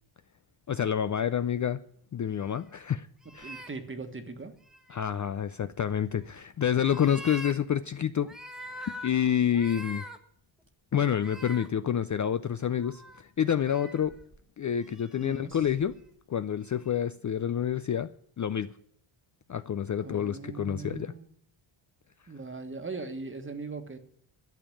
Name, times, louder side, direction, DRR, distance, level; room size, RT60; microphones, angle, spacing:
voice 1, 0.7-1.8 2.1-3.1 3.3-3.7 4.9-8.3 8.6-10.0 10.9-14.1 14.6-16.0 16.3-18.1 18.4-18.7 19.5-21.1, left 9 dB, 40° left, 0.4 m, -28 dB
sound 1, 2.4-2.6 3.2-3.7 4.7-5.1 5.9-6.4 6.8-7.5 8.2-9.1 9.5-10.2 11.0-11.7 12.5-13.2 13.6-14.4 14.9-16.0 16.9-17.0, equal, ahead, 1.2 m, -44 dB
voice 2, 3.4-4.5 15.2-15.6 20.0-21.3 22.3-24.0, right 4 dB, 25° right, 1.4 m, -40 dB
12.0 x 7.1 x 9.8 m
wide cardioid pair, 145°, 49 cm